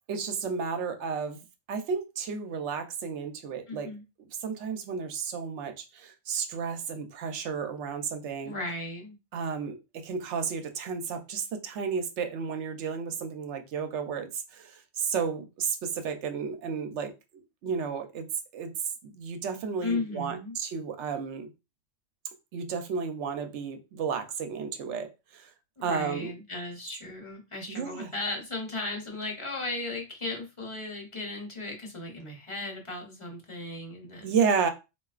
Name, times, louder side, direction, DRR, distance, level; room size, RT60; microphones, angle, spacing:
voice 1, 0.1-3.9 4.4-8.5 9.3-17.1 17.6-18.3 18.5-18.7 19.1-21.5 22.5-25.5 25.8-26.3 27.7-28.1 34.2-34.7, right 6 dB, 75° right, 0.9 m, -32 dB
voice 2, 3.7-4.0 8.4-9.2 19.8-20.6 25.8-34.4, left 2 dB, 30° left, 0.8 m, -36 dB
3.8 x 2.3 x 2.4 m
omnidirectional pair, 1.2 m